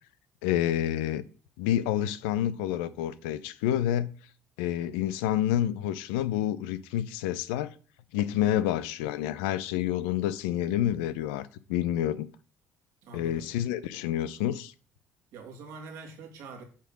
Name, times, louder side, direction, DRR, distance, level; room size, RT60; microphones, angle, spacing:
voice 1, 0.4-1.2 1.6-4.1 4.6-7.7 8.1-12.3 13.1-14.7, left 12 dB, 90° left, 0.5 m, -28 dB
voice 2, 8.3-8.6 13.0-13.4 15.3-16.6, right 3 dB, 75° right, 2.4 m, -44 dB
8.4 x 3.6 x 6.2 m
supercardioid pair, 70°, 5 cm